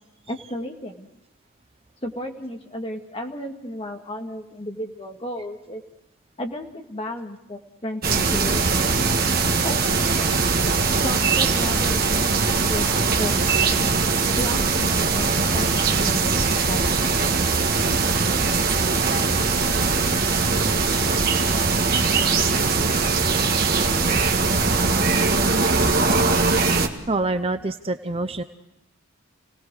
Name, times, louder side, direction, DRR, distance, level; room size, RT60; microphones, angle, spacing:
voice 1, 0.3-1.1 2.0-5.8 6.4-9.0 9.6-10.4 11.0-13.9 14.4-17.1, left 1 dB, 25° left, 2 dB, 2.1 m, -34 dB
sound 1, 8.0-26.9, right 4 dB, 45° right, 1.7 m, -21 dB
voice 2, 27.1-28.4, right 2 dB, 30° right, 9 dB, 0.7 m, -26 dB
29.5 x 18.5 x 4.9 m, 0.89 s
head